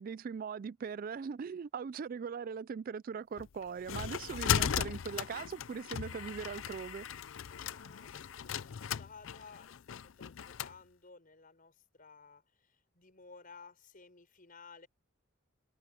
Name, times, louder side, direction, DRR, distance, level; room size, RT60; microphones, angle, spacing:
voice 1, 0.0-7.1, right 6 dB, 45° right, 0.3 m, -40 dB
sound 1, 3.4-10.7, left 8 dB, 70° left, 0.5 m, -37 dB
voice 2, 7.4-14.9, left 4 dB, 45° left, 5.8 m, -56 dB
head